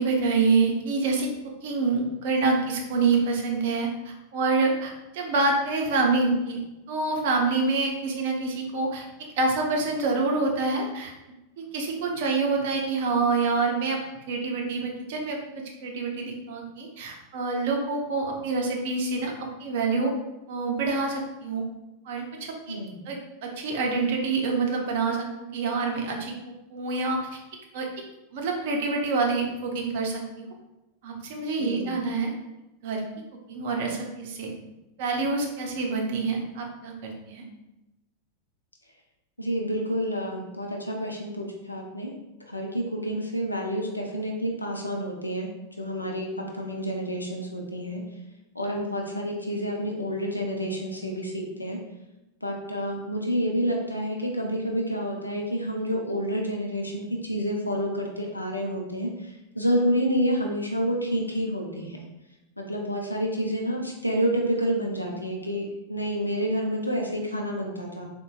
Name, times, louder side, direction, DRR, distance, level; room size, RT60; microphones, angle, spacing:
voice 1, 0.0-6.6 6.9-9.0 9.4-11.1 11.6-20.1 20.5-21.7 22.1-22.8 23.1-26.3 26.7-27.4 27.7-28.1 28.3-30.5 31.0-32.3 32.8-33.0 33.5-34.5 35.0-37.4, right 3 dB, 50° right, 1 dB, 0.6 m, -27 dB
voice 2, 31.6-31.9 39.4-42.1 42.5-48.0 48.5-51.8 52.4-62.0 62.6-68.0, equal, 85° left, 0 dB, 0.5 m, -29 dB
3.8 x 2.1 x 2.3 m, 0.97 s
figure-of-eight pair, 90°, 0 cm